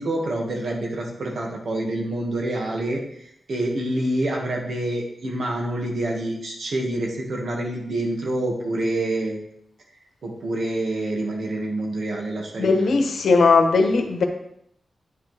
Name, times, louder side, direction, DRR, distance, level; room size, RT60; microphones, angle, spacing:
voice 1, 0.0-9.4 10.2-12.9, right 1 dB, 75° right, 0 dB, 2.0 m, -27 dB
voice 2, 12.6-14.2, left 4 dB, 85° left, 5 dB, 1.1 m, -18 dB
9.8 x 6.9 x 3.5 m, 0.73 s
wide cardioid pair, 115°, 0 cm